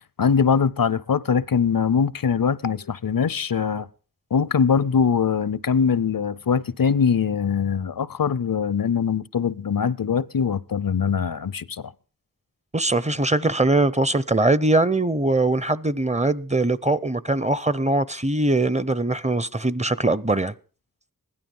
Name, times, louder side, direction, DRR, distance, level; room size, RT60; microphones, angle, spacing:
voice 1, 0.2-3.9 4.3-11.9, left 6 dB, 70° left, 0.6 m, -22 dB
voice 2, 12.7-20.5, right 2 dB, 20° right, 0.6 m, -21 dB
16.0 x 12.0 x 5.4 m
wide cardioid pair, 45°, 35 cm